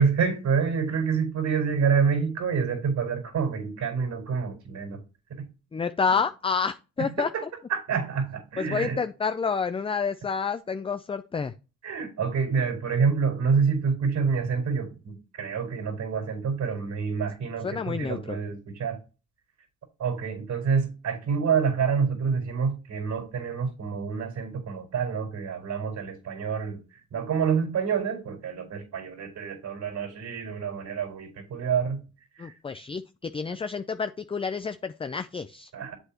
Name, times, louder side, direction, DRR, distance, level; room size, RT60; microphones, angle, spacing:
voice 1, 0.0-5.0 5.3-5.4 6.1-6.2 7.0-7.4 7.7-9.0 11.8-19.0 20.0-26.8 27.1-32.0 32.3-32.5 35.7-36.0, right 6 dB, 70° right, 4.9 m, -27 dB
voice 2, 5.7-7.3 8.6-11.5 17.6-18.4 32.4-35.7, left 5 dB, 20° left, 0.4 m, -29 dB
8.1 x 8.0 x 3.0 m
cardioid pair, 90°, 30 cm